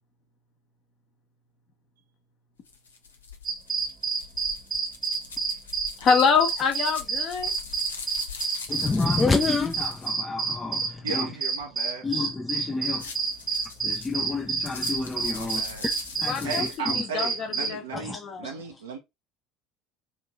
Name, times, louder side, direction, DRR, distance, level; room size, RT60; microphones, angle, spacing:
sound 1, 2.6-10.1 12.8-16.8, left 5 dB, 80° left, 0.7 m, -42 dB
sound 2, 3.5-17.7, right 5 dB, 35° right, 0.9 m, -29 dB
voice 1, 6.0-7.5 16.2-18.6, left 6 dB, 45° left, 1.0 m, -26 dB
voice 2, 8.7-11.3 12.0-13.0 13.8-17.0 17.9-18.5, left 3 dB, 20° left, 0.5 m, -29 dB
voice 3, 11.0-12.1 15.4-15.8 16.4-19.0, right 5 dB, 75° right, 0.6 m, -36 dB
3.1 x 2.9 x 3.6 m
figure-of-eight pair, 65°, 0 cm